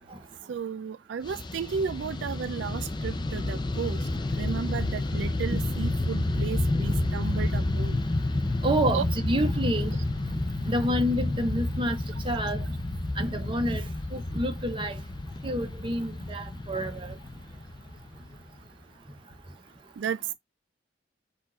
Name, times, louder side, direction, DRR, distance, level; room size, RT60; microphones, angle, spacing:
voice 1, 0.5-4.0 4.4-8.0 8.9-9.0 20.0-20.3, right 6 dB, 80° right, 0.4 m, -33 dB
Fixed-wing aircraft airplane, 1.2-18.7, left 2 dB, 25° left, 0.4 m, -30 dB
voice 2, 8.6-9.9 10.7-12.0 12.3-12.6 13.2-13.8 14.1-15.0 15.4-17.0, equal, 30° right, 0.8 m, -28 dB
4.4 x 2.5 x 4.2 m
head